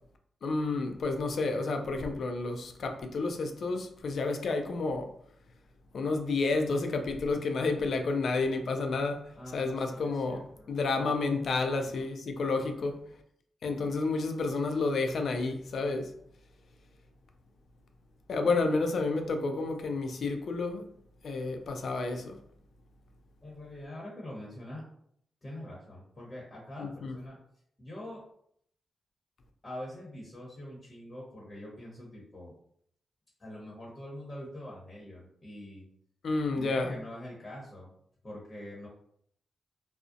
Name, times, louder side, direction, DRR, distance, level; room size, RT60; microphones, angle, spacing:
voice 1, 0.4-5.1 5.9-13.0 13.6-16.1 18.3-20.9 21.2-22.3 26.8-27.2 36.2-37.0, left 3 dB, 70° left, 0.3 m, -30 dB
voice 2, 9.4-12.1 12.6-13.0 18.4-18.9 23.4-24.8 25.4-27.4 27.8-28.2 29.6-32.5 33.4-35.9 36.5-37.9 38.2-38.9, left 1 dB, 30° left, 0.9 m, -45 dB
2.4 x 2.0 x 2.5 m
supercardioid pair, 50°, 0 cm